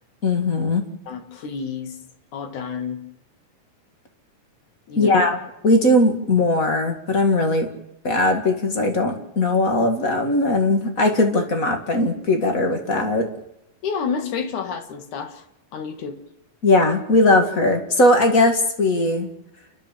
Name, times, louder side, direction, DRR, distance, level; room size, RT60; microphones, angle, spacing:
voice 1, 0.2-0.8 4.9-5.3 5.6-7.7 8.0-13.3 16.6-19.3, left 2 dB, 35° left, 5 dB, 1.5 m, -19 dB
voice 2, 1.1-2.0 2.3-3.0 4.9-5.2 13.8-15.4 15.7-16.2, left 6 dB, 55° left, 8 dB, 2.8 m, -29 dB
30.0 x 12.0 x 7.6 m, 0.84 s
omnidirectional pair, 4.7 m